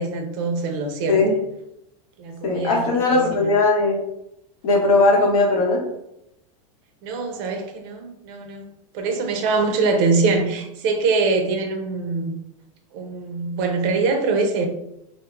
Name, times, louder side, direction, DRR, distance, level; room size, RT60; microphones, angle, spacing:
voice 1, 0.0-1.2 2.2-2.8 3.1-3.5 7.0-8.6 8.9-12.4 12.9-14.7, right 4 dB, 45° right, 4 dB, 0.4 m, -23 dB
voice 2, 2.4-4.0 4.6-5.8, left 3 dB, 80° left, -2 dB, 0.9 m, -18 dB
2.1 x 2.0 x 3.0 m, 0.82 s
supercardioid pair, 160°, 18 cm